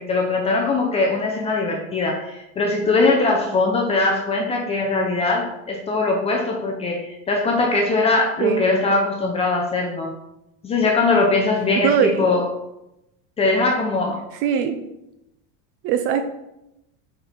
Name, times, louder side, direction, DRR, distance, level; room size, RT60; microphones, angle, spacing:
voice 1, 0.0-10.1 10.6-12.5 13.4-14.2, left 3 dB, 20° left, 0 dB, 0.6 m, -21 dB
voice 2, 11.8-12.3 14.4-14.7 15.8-16.2, right 8 dB, 40° right, 7 dB, 0.4 m, -20 dB
4.6 x 4.3 x 5.1 m, 0.88 s
supercardioid pair, 155°, 34 cm